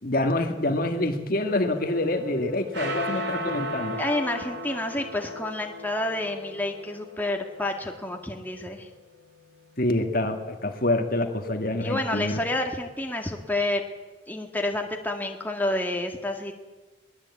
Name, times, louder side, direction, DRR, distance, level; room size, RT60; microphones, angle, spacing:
voice 1, 0.0-4.0 9.8-12.4, left 1 dB, 50° left, 5 dB, 1.9 m, -26 dB
sound 1, 1.4-10.0, equal, 65° right, 3.9 m, -37 dB
voice 2, 4.0-8.9 11.8-13.8 14.3-16.5, left 1 dB, 10° left, 2 dB, 2.1 m, -29 dB
22.0 x 20.5 x 8.6 m, 1.2 s
head